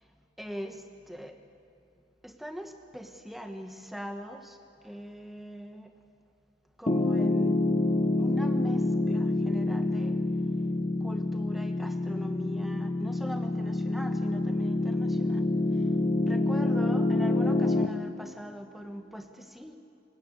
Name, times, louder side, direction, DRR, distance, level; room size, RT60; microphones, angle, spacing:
voice 1, 0.4-1.4 2.2-4.6 4.8-5.9 6.8-7.6 8.2-10.2 11.0-15.5 16.3-19.8, equal, ahead, 5 dB, 1.3 m, -41 dB
Piano, 6.9-17.9, left 2 dB, 35° left, 1.1 m, -27 dB
26.5 x 17.0 x 8.3 m, 2.9 s
head